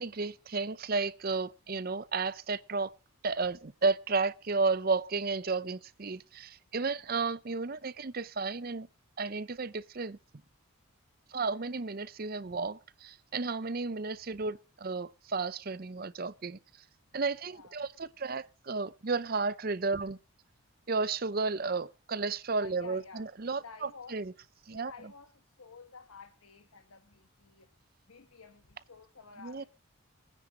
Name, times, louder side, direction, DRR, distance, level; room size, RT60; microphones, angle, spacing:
voice 1, 0.0-2.9 3.2-8.9 9.2-10.2 11.3-16.6 17.1-20.2 20.9-24.3 24.7-24.9 29.4-29.6, right 4 dB, 45° right, 0.6 m, -33 dB
voice 2, 22.6-24.2 24.7-25.3 25.6-27.7 28.1-29.6, left 5 dB, 90° left, 1.2 m, -52 dB
23.0 x 9.9 x 2.9 m
head